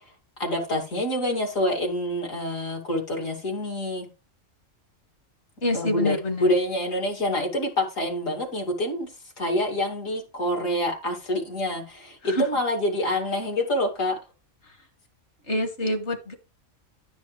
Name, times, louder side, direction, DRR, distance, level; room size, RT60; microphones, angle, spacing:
voice 1, 0.4-4.1 5.7-9.1 9.4-14.2, left 1 dB, 75° left, 2.9 m, -26 dB
voice 2, 5.6-6.5 12.2-12.4 13.1-13.2 15.5-16.3, left 1 dB, 60° left, 1.9 m, -26 dB
11.0 x 6.3 x 3.2 m
omnidirectional pair, 1.4 m